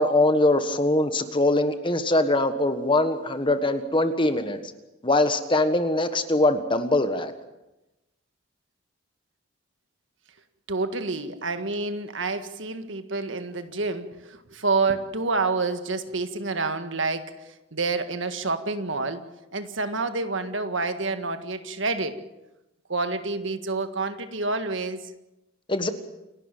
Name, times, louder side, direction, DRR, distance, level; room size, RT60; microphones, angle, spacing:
voice 1, 0.0-4.6 5.0-7.3 25.7-25.9, left 2 dB, 25° left, 9 dB, 1.5 m, -22 dB
voice 2, 10.7-17.3 17.7-19.2 19.5-22.2 22.9-25.0, right 3 dB, 65° right, 9 dB, 1.7 m, -28 dB
28.5 x 12.5 x 9.1 m, 0.97 s
head